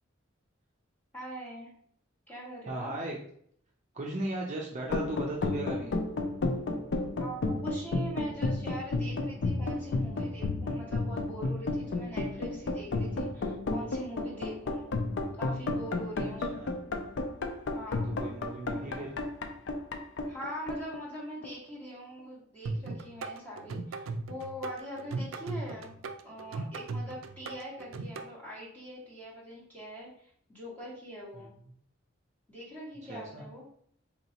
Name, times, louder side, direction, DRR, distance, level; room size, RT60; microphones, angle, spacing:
voice 1, 1.1-1.7 2.3-2.9 7.2-14.9 15.4-16.6 17.7-18.2 18.7-19.1 20.2-26.0 26.2-31.5 32.5-33.7, equal, 10° left, -7 dB, 1.6 m, -43 dB
voice 2, 2.7-3.2 3.9-6.0 13.0-13.4 16.5-16.7 18.2-19.1 33.1-33.4, right 2 dB, 40° right, -2 dB, 0.6 m, -37 dB
sound 1, 4.8-21.7, left 2 dB, 65° left, 0.5 m, -32 dB
sound 2, 22.7-28.3, right 3 dB, 85° right, 0.4 m, -37 dB
4.1 x 2.9 x 2.8 m, 0.63 s
head